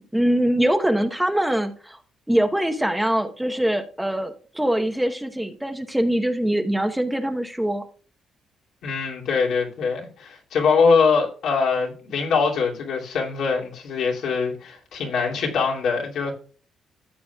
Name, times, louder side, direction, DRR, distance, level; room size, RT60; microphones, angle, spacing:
voice 1, 0.1-2.0 2.3-7.8, right 1 dB, 5° right, 1.0 m, -23 dB
voice 2, 8.8-16.3, left 5 dB, 75° left, 2.6 m, -23 dB
14.0 x 7.5 x 2.3 m
cardioid pair, 90°, 0 cm